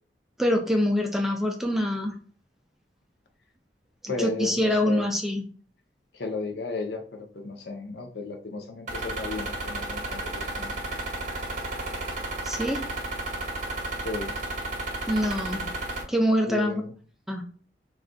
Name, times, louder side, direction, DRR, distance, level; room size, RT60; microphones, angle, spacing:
voice 1, 0.4-2.2 4.0-5.4 12.4-12.9 15.1-15.7 16.1-16.8 17.3-17.4, equal, ahead, 3 dB, 0.4 m, -25 dB
voice 2, 4.1-5.1 6.1-10.7 14.0-14.3 16.5-16.9, left 3 dB, 70° left, 5 dB, 0.7 m, -34 dB
sound 1, 8.9-16.0, right 2 dB, 45° right, 0.8 m, -33 dB
3.7 x 2.4 x 2.2 m, 0.42 s
head